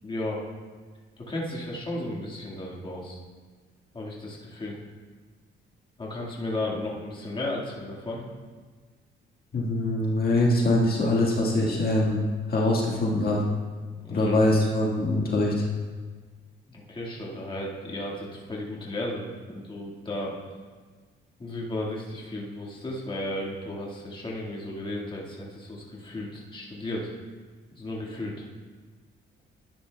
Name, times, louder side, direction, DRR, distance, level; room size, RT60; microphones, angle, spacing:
voice 1, 0.0-0.5 1.2-3.2 3.9-4.8 6.0-8.2 13.8-14.3 16.7-20.3 21.4-27.1 27.7-28.4, left 1 dB, 25° left, -3 dB, 1.7 m, -34 dB
voice 2, 9.5-12.2 12.5-13.4 14.1-15.5, left 1 dB, 50° left, -3 dB, 1.6 m, -23 dB
12.5 x 9.8 x 2.2 m, 1.5 s
cardioid pair, 90°, 20 cm